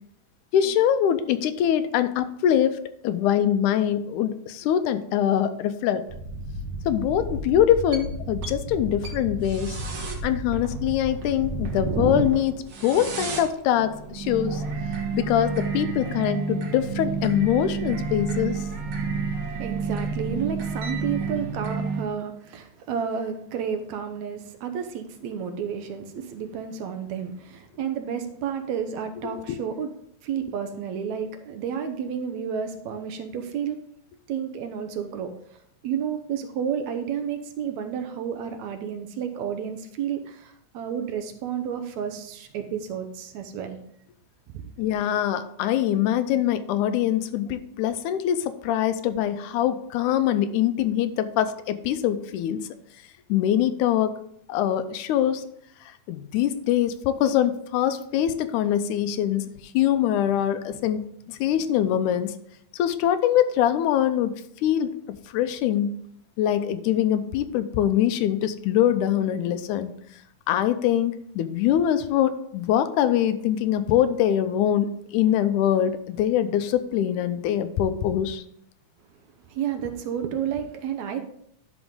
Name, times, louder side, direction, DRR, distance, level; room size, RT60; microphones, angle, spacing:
voice 1, 0.5-2.8 3.0-6.0 6.9-9.8 10.2-14.6 15.1-18.6 29.2-29.6 44.8-52.7 53.3-54.1 54.5-55.4 56.1-59.5 59.7-62.3 62.7-64.4 64.6-64.9 65.3-66.0 66.4-69.9 70.5-78.4, left 10 dB, 80° left, 11 dB, 2.0 m, -23 dB
sound 1, 6.1-22.0, right 3 dB, 50° right, 1.9 m, -30 dB
voice 2, 19.6-29.9 30.2-33.8 34.3-35.3 35.8-43.8 44.5-44.7 79.5-81.2, right 7 dB, 75° right, 7 dB, 1.9 m, -31 dB
11.0 x 6.1 x 3.7 m, 0.70 s
omnidirectional pair, 3.7 m